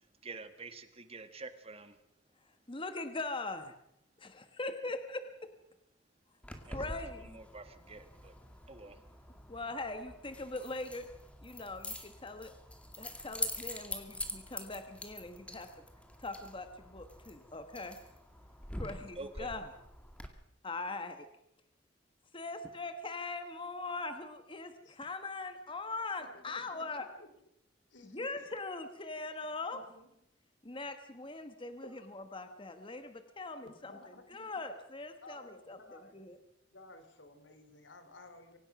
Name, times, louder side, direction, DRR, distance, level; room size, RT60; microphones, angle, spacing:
voice 1, 0.2-2.0 6.6-6.8 7.2-8.4 8.7-9.0 19.2-19.5, right 3 dB, 35° right, 10 dB, 1.7 m, -47 dB
voice 2, 2.4-3.7 4.2-5.5 6.7-7.4 9.5-11.1 11.4-12.5 13.0-15.7 16.2-18.0 18.7-19.7 20.6-21.3 22.3-27.1 28.0-29.8 30.6-36.4, left 3 dB, 30° left, 8 dB, 1.3 m, -41 dB
Keys jangling, 6.4-20.3, left 1 dB, 5° left, 2.2 m, -45 dB
voice 3, 26.2-27.3 27.9-28.2 29.7-30.1 31.8-32.1 33.6-34.5 35.2-36.2 36.7-38.6, left 2 dB, 80° left, 9 dB, 3.2 m, -55 dB
24.5 x 17.5 x 6.0 m, 0.79 s
head